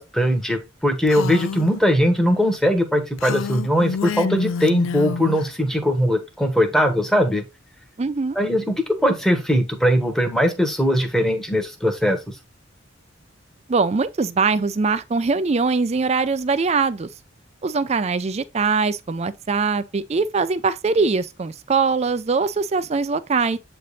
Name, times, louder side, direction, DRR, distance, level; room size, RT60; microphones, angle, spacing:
voice 1, 0.0-7.5 8.3-12.4, equal, ahead, 1.1 m, -20 dB
Female speech woman speaking, 1.1-1.7 3.2-5.5, left 5 dB, 75° left, 0.4 m, -27 dB
voice 2, 8.0-8.4 13.7-17.1 17.6-23.6, right 4 dB, 30° right, 0.4 m, -22 dB
7.9 x 3.3 x 4.1 m
head